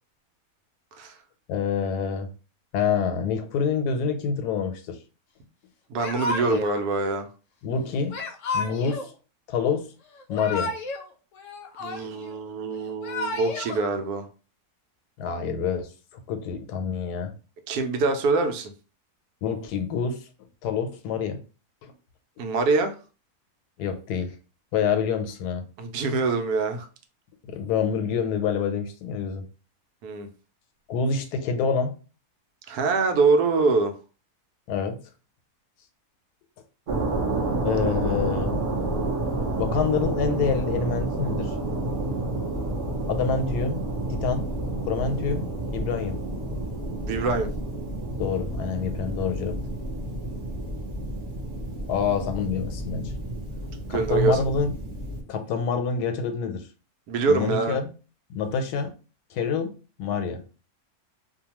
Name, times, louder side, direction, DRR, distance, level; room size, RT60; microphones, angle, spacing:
voice 1, 1.5-2.3 2.7-5.0 6.4-6.6 7.6-8.2 8.5-9.1 9.5-9.9 10.3-10.7 15.2-15.9 16.3-17.3 19.4-20.2 20.6-21.4 21.8-21.9 23.8-24.3 24.7-25.6 27.5-29.4 30.9-31.9 34.7-35.0 37.6-38.6 39.6-41.5 43.1-43.8 44.1-44.5 44.8-45.5 45.7-46.2 48.2-49.6 51.9-53.1 53.9-54.7 55.3-56.7 57.3-57.9 58.3-58.9 59.3-59.7 60.0-60.4, left 6 dB, 85° left, 1.1 m, -27 dB
voice 2, 5.9-7.3 11.8-14.3 17.7-18.7 22.4-23.0 25.8-26.9 30.0-30.3 32.7-33.9 37.9-38.0 47.1-47.5 53.9-54.4 57.1-57.8, right 3 dB, 80° right, 1.1 m, -24 dB
Yell / Crying sobbing, 6.0-6.8 8.1-9.1 10.1-11.1 11.3-12.3 12.9-13.8, left 3 dB, 65° left, 0.8 m, -32 dB
sound 1, 36.9-55.2, right 2 dB, 45° right, 0.7 m, -30 dB
2.7 x 2.2 x 2.8 m
omnidirectional pair, 1.6 m